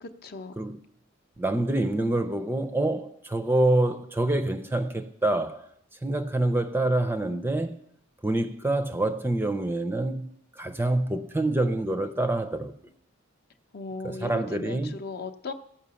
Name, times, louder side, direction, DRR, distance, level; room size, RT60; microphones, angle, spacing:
voice 1, 0.0-0.5 13.7-15.5, left 3 dB, 50° left, 0.7 m, -37 dB
voice 2, 1.4-5.6 6.0-7.7 8.2-10.3 10.6-12.7 14.0-14.9, right 2 dB, 10° right, 0.5 m, -26 dB
15.0 x 5.7 x 6.9 m
head